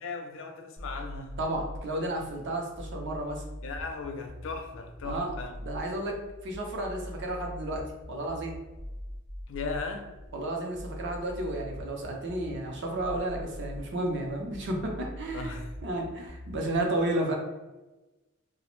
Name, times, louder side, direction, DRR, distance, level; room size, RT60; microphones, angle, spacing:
voice 1, 0.0-1.3 3.6-5.5 9.5-10.1 15.3-15.7, left 4 dB, 65° left, 4 dB, 0.4 m, -37 dB
sound 1, 0.8-16.8, equal, 5° left, 0.5 m, -42 dB
voice 2, 1.4-3.4 5.0-5.3 5.6-6.2 6.4-8.6 10.3-15.6 15.8-17.4, right 1 dB, 60° right, 1 dB, 0.5 m, -32 dB
2.4 x 2.0 x 3.0 m, 1.1 s
head